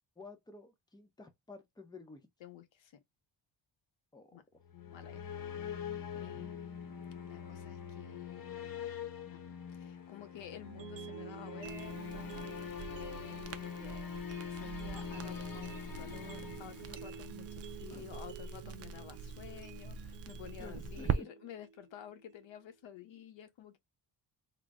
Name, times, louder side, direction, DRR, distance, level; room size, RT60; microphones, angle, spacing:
voice 1, 0.2-2.2 4.1-4.6 6.2-6.5 17.9-18.0 20.6-21.3, left 2 dB, 10° left, 0.8 m, -52 dB
voice 2, 2.4-3.0 4.3-4.4 4.7-5.2 5.6-5.8 6.1-8.8 9.2-9.4 9.7-14.1 14.5-23.8, left 11 dB, 80° left, 0.9 m, -51 dB
sound 1, 4.6-17.5, left 7 dB, 50° left, 0.9 m, -44 dB
sound 2, 10.6-22.6, right 9 dB, 75° right, 0.7 m, -51 dB
Crackle, 11.6-21.2, right 6 dB, 35° right, 0.4 m, -43 dB
3.9 x 2.1 x 3.5 m
wide cardioid pair, 140°, 45 cm